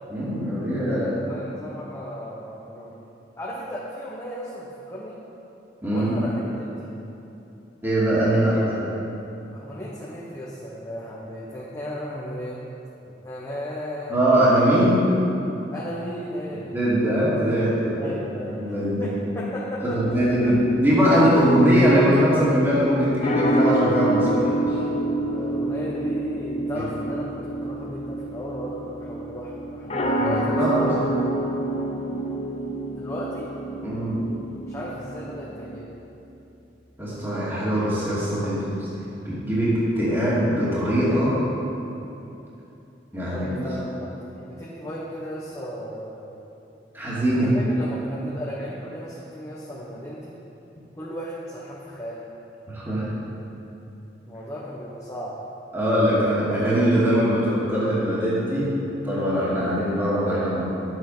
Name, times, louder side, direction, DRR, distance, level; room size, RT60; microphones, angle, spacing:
voice 1, 0.1-1.1 5.8-6.1 7.8-8.8 14.1-15.0 16.7-18.1 18.4-19.1 19.9-24.6 30.2-30.9 33.8-34.2 37.0-38.7 39.2-41.3 43.1-43.7 46.9-47.5 52.7-53.1 55.7-58.7 59.0-60.6, equal, 15° right, -10 dB, 2.5 m, -21 dB
voice 2, 1.3-2.9 3.4-5.2 5.8-6.7 9.5-12.6 13.2-14.2 15.7-16.7 18.0-18.7 19.0-20.5 25.3-31.0 33.0-33.5 34.7-35.9 43.3-46.3 47.3-50.3 50.9-52.2 54.3-55.3, equal, 15° left, -7 dB, 1.2 m, -35 dB
sound 1, 20.0-35.9, right 1 dB, 35° left, 0.9 m, -28 dB
11.5 x 7.9 x 5.7 m, 2.9 s
head